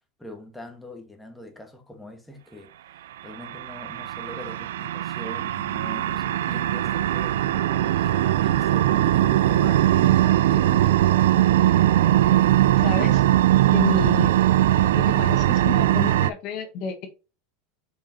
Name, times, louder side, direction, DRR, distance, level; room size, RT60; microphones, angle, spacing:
voice 1, 0.2-11.5, left 1 dB, 5° left, 1.6 m, -42 dB
sound 1, 3.4-16.3, right 13 dB, 80° right, 0.3 m, -20 dB
voice 2, 12.8-13.2 13.7-14.3 14.9-17.1, left 6 dB, 55° left, 1.5 m, -30 dB
7.2 x 4.9 x 2.8 m
hypercardioid pair, 95°, 0 cm